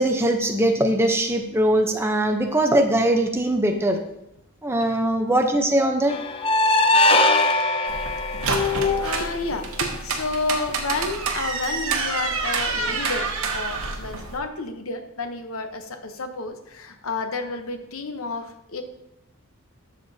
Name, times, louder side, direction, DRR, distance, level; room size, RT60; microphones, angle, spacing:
voice 1, 0.0-4.0 4.6-6.2, right 1 dB, 10° right, 4 dB, 0.7 m, -21 dB
sound 1, 6.1-9.3, left 2 dB, 25° left, 0.4 m, -20 dB
sound 2, 7.9-14.4, right 4 dB, 70° right, 1.2 m, -28 dB
voice 2, 8.6-18.8, left 3 dB, 70° left, 7 dB, 0.9 m, -31 dB
11.5 x 6.7 x 2.8 m, 0.85 s
head